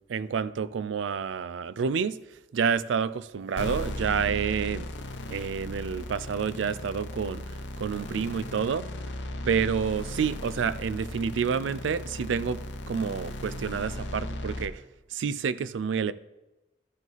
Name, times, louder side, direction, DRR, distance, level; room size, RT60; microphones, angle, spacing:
voice 1, 0.0-2.2 2.5-4.9 5.3-7.4 7.8-8.9 9.5-12.6 12.9-14.8 15.1-16.1, right 6 dB, 90° right, 0.4 m, -29 dB
sound 1, 3.6-14.7, left 1 dB, 85° left, 0.8 m, -36 dB
13.5 x 4.9 x 4.0 m
head